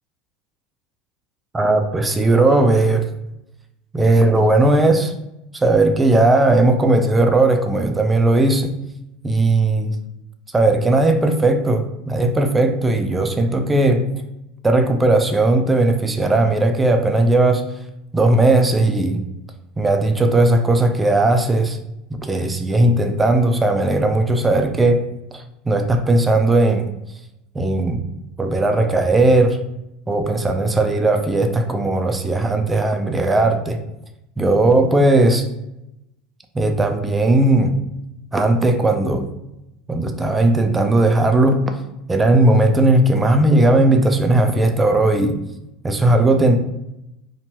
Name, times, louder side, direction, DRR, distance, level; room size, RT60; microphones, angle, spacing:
voice 1, 1.5-3.0 3.9-5.1 5.5-8.7 9.2-10.0 10.5-14.0 14.6-17.6 18.1-19.2 19.8-21.8 22.2-25.0 25.3-26.8 27.5-28.0 28.4-29.6 30.1-33.8 34.4-35.4 36.5-37.7 38.3-39.2 39.9-41.6 42.1-45.4 45.8-46.6, right 2 dB, 15° right, 5 dB, 0.3 m, -17 dB
2.9 x 2.2 x 2.8 m, 0.89 s
supercardioid pair, 125°, 0 cm